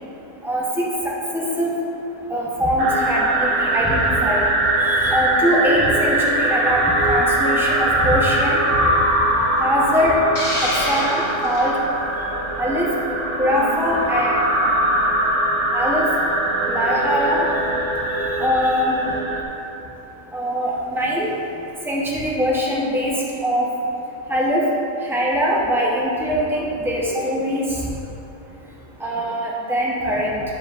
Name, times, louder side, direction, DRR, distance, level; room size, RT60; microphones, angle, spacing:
voice 1, 0.4-1.7 2.3-4.4 4.8-8.6 9.6-10.2 10.6-11.8 12.6-12.9 13.4-14.4 15.7-16.1 16.7-17.5 18.2-19.0 20.3-21.3 21.8-23.2 23.4-23.7 24.3-24.6 25.0-27.8 29.0-30.4, equal, 5° right, -5 dB, 0.4 m, -22 dB
sound 1, 2.8-19.4, right 1 dB, 60° right, 1.0 m, -21 dB
Hiss, 10.3-11.7, left 1 dB, 60° left, 1.8 m, -26 dB
7.8 x 5.1 x 2.4 m, 2.9 s
omnidirectional pair, 1.4 m